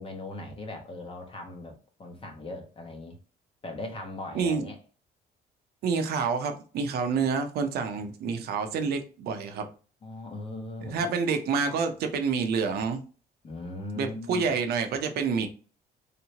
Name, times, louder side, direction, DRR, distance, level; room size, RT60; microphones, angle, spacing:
voice 1, 0.0-3.2 3.6-4.8 10.0-11.1 13.4-14.5, left 2 dB, 30° left, 1.1 m, -39 dB
voice 2, 4.3-4.7 5.8-9.6 10.9-13.0 14.0-15.5, right 5 dB, 70° right, 0.7 m, -28 dB
3.3 x 2.9 x 2.8 m
cardioid pair, 110°, 17 cm